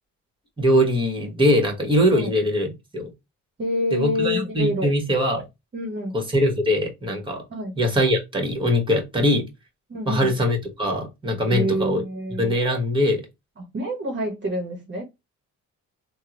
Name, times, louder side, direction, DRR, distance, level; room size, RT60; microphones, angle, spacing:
voice 1, 0.6-3.1 3.9-5.4 6.1-7.4 7.8-9.5 10.1-12.0 12.4-13.2, equal, 15° right, 1.4 m, -22 dB
voice 2, 3.6-4.9 5.7-6.2 7.5-7.8 9.9-10.4 11.4-12.5 13.6-15.0, equal, 40° right, 1.1 m, -27 dB
3.5 x 2.3 x 2.9 m
cardioid pair, 90°, 30 cm